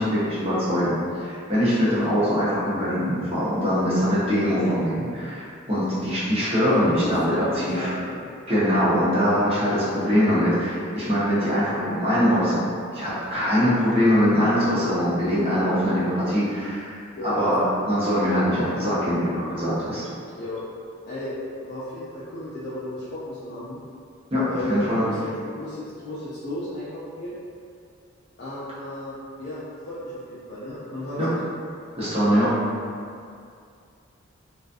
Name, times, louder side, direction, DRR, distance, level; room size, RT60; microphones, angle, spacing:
voice 1, 0.0-7.3 7.6-7.9 8.5-12.6 12.9-17.0 17.2-20.1 24.3-25.0 31.2-31.3 32.0-32.5, equal, 30° right, -11 dB, 0.8 m, -22 dB
voice 2, 1.8-2.2 4.6-4.7 6.6-8.2 17.1-17.3 20.4-20.6 21.0-23.8 24.5-27.4 28.4-31.3, left 1 dB, 55° left, -11 dB, 0.4 m, -33 dB
2.4 x 2.3 x 2.5 m, 2.3 s
head